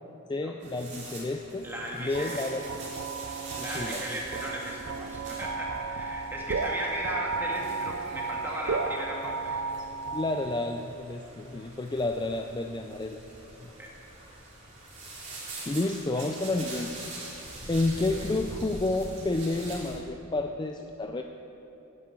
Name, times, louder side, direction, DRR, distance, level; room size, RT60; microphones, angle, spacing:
voice 1, 0.3-1.7 2.0-2.6 3.6-4.2 10.1-13.2 13.6-13.7 15.7-17.1 17.7-21.2, left 2 dB, 20° left, 5 dB, 0.4 m, -30 dB
sound 1, 0.6-20.0, right 2 dB, 35° right, 3.3 m, -44 dB
voice 2, 1.6-2.4 3.6-9.6 13.8-13.9, equal, 10° right, -3 dB, 2.1 m, -36 dB
sound 2, 2.1-10.9, right 4 dB, 70° right, 0.6 m, -34 dB
10.0 x 9.6 x 8.7 m, 3.0 s
head